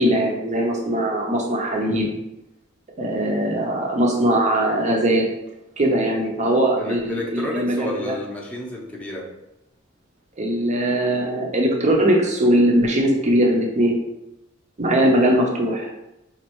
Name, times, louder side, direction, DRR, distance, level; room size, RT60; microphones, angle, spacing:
voice 1, 0.0-2.1 3.0-5.3 5.8-8.2 10.4-14.0 14.8-16.0, right 1 dB, 35° right, 1 dB, 0.6 m, -20 dB
voice 2, 6.8-9.3, left 1 dB, 5° left, -3 dB, 0.7 m, -31 dB
5.2 x 2.4 x 3.0 m, 0.89 s
head